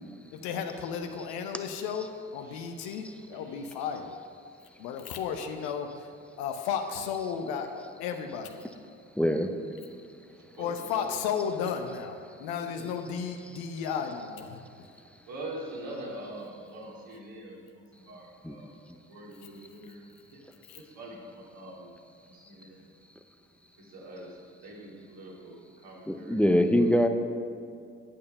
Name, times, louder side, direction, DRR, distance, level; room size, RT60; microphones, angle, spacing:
voice 1, 0.3-4.1 4.8-6.1 6.4-8.6 10.6-14.6 20.7-20.8, left 7 dB, 70° left, 5 dB, 0.9 m, -34 dB
voice 2, 3.3-3.7 10.5-11.1 12.6-12.9 15.3-18.7 19.1-20.1 20.3-20.4 20.7-21.9 22.2-22.8 23.8-24.3 24.6-27.0, right 1 dB, 65° right, -4 dB, 2.9 m, -44 dB
voice 3, 9.2-9.5 18.4-18.6 26.1-27.1, equal, 5° left, 6 dB, 0.8 m, -23 dB
9.1 x 8.5 x 5.5 m, 2.4 s
hypercardioid pair, 50°, 38 cm